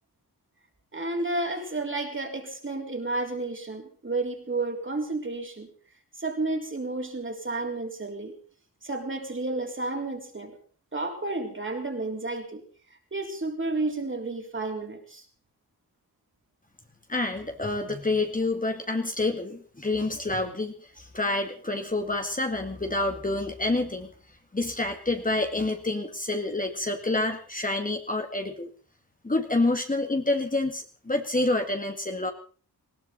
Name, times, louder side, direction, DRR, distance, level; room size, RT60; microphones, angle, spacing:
voice 1, 0.9-5.7 6.2-8.4 8.8-10.6 10.9-12.6 13.1-15.2, right 2 dB, 30° right, 3 dB, 3.9 m, -31 dB
voice 2, 17.1-24.1 24.5-28.7 29.2-32.3, left 2 dB, 20° left, 4 dB, 2.1 m, -28 dB
20.0 x 17.0 x 4.1 m, 0.40 s
wide cardioid pair, 85°, 38 cm